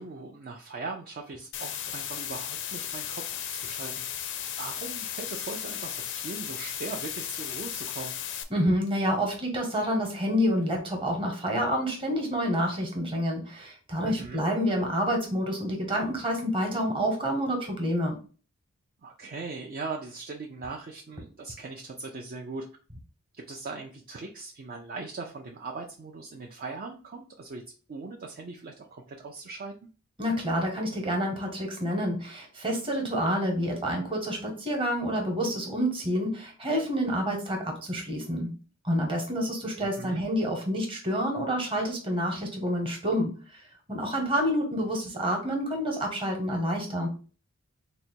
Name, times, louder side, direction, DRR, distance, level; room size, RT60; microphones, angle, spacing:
voice 1, 0.0-4.1 4.6-8.1 14.0-14.4 19.0-22.7 23.4-27.6 27.9-29.7 39.8-40.2, right 3 dB, 40° right, 1 dB, 0.4 m, -40 dB
sound 1, 1.5-8.4, left 10 dB, 55° left, 0.4 m, -35 dB
voice 2, 8.5-18.2 30.2-38.5 38.8-43.3 43.9-47.1, equal, 25° right, 1 dB, 1.1 m, -28 dB
3.9 x 2.2 x 4.4 m, 0.38 s
head